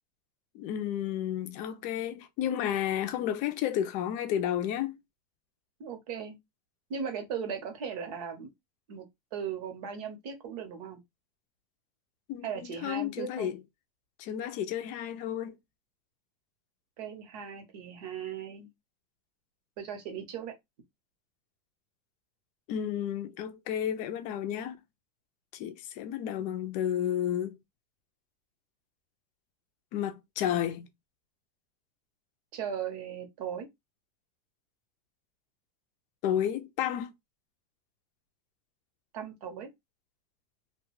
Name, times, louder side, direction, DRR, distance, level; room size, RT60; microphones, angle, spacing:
voice 1, 0.5-5.0 12.3-13.6 14.2-15.6 22.7-24.8 25.5-27.6 29.9-30.9 36.2-37.1, left 10 dB, 35° left, 0.5 m, -32 dB
voice 2, 5.8-6.4 6.9-8.5 8.9-9.0 9.3-11.0 12.4-13.6 17.0-18.7 19.8-20.6 32.5-33.7 39.1-39.7, right 7 dB, 65° right, 1.0 m, -37 dB
2.3 x 2.3 x 3.1 m
supercardioid pair, 150°, 21 cm